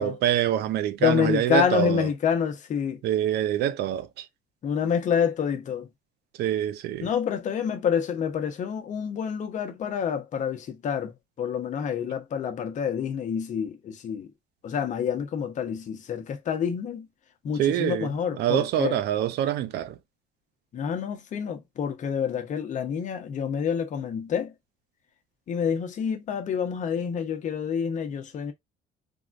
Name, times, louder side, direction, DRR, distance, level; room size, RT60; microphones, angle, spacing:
voice 1, 0.0-2.1 3.0-4.3 6.4-7.1 17.6-20.0, right 11 dB, 75° right, 0.5 m, -26 dB
voice 2, 1.0-3.0 4.6-5.9 7.0-14.3 14.6-17.1 17.4-19.0 20.7-24.5 25.5-28.5, left 7 dB, 45° left, 0.7 m, -28 dB
3.5 x 2.2 x 2.4 m
cardioid pair, 110°, 17 cm